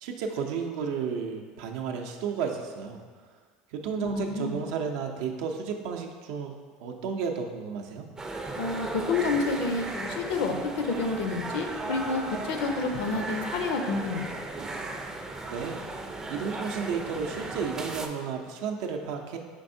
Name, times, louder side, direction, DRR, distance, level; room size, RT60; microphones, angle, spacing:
voice 1, 0.0-3.0 3.7-6.5 6.8-8.1 15.4-15.8 16.3-19.4, right 6 dB, 75° right, 3 dB, 0.5 m, -32 dB
voice 2, 4.0-4.6 8.6-14.3, left 4 dB, 75° left, 5 dB, 0.5 m, -29 dB
sound 1, 8.2-18.1, right 2 dB, 15° right, 0.4 m, -36 dB
5.2 x 3.4 x 2.6 m, 1.5 s
supercardioid pair, 110°, 3 cm